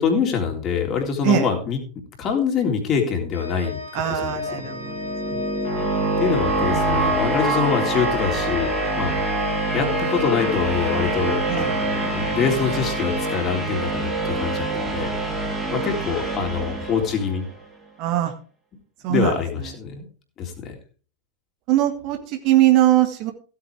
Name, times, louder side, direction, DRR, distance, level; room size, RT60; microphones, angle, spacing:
voice 1, 0.0-1.8 2.2-4.7 6.2-8.7 9.0-9.2 9.7-15.2 15.7-17.4 19.1-20.1 20.4-20.8, left 6 dB, 30° left, 2 dB, 3.5 m, -25 dB
Organ, 3.3-14.2, left 4 dB, 85° left, 2.6 m, -35 dB
voice 2, 3.9-5.0 5.2-5.5 5.8-6.2 11.5-11.7 14.8-15.4 18.0-18.3 19.0-19.4 21.7-23.3, right 12 dB, 40° right, 5 dB, 1.9 m, -22 dB
sound 1, 4.5-17.5, right 2 dB, 5° right, 3.1 m, -25 dB
16.0 x 8.5 x 3.5 m, 0.37 s
figure-of-eight pair, 90°, 0 cm